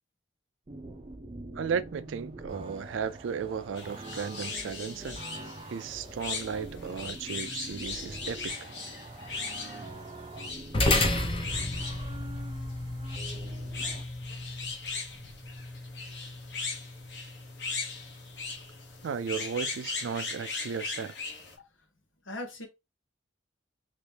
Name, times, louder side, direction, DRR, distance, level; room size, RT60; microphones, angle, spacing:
sound 1, 0.7-14.0, right 2 dB, 30° right, 0.4 m, -45 dB
voice 1, 1.5-5.2 5.7-8.7 19.0-21.2, right 6 dB, 85° right, 0.4 m, -35 dB
sound 2, 3.7-21.5, left 4 dB, 60° left, 1.0 m, -39 dB
sound 3, 10.7-19.4, left 2 dB, 30° left, 0.7 m, -33 dB
voice 2, 21.6-21.9 22.2-22.7, left 1 dB, 90° left, 1.2 m, -40 dB
3.0 x 2.8 x 3.3 m
head